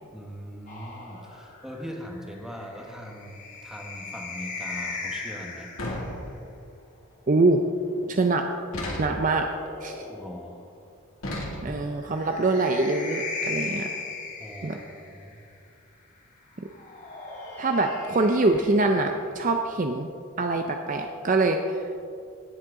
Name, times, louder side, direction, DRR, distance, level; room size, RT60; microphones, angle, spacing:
voice 1, 0.1-5.7 10.1-10.6 14.4-15.4, equal, ahead, 0 dB, 1.2 m, -41 dB
sound 1, 0.7-6.2 7.6-10.6 11.9-15.4 16.6-19.6, left 4 dB, 35° left, 1.8 m, -38 dB
sound 2, 5.8-6.7 8.7-9.4 11.2-12.0, left 1 dB, 70° left, 2.3 m, -34 dB
voice 2, 7.3-7.6 8.1-8.5 9.0-9.5 9.8-10.1 11.6-13.9 14.6-14.8 16.6-16.7 17.6-20.1 20.4-21.9, right 2 dB, 35° right, 4 dB, 0.5 m, -24 dB
17.5 x 7.5 x 3.7 m, 2.4 s
head